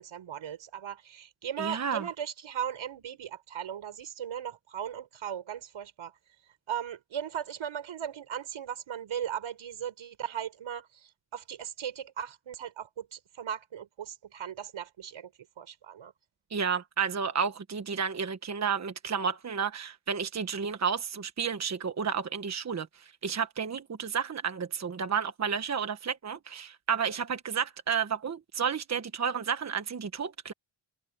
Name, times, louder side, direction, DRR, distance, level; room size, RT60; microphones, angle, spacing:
voice 1, 0.0-6.1 6.7-15.3 15.6-16.1, right 9 dB, 80° right, 5.2 m, -38 dB
voice 2, 1.6-2.0 16.5-30.5, right 6 dB, 35° right, 1.2 m, -31 dB
wide cardioid pair, 120°, 47 cm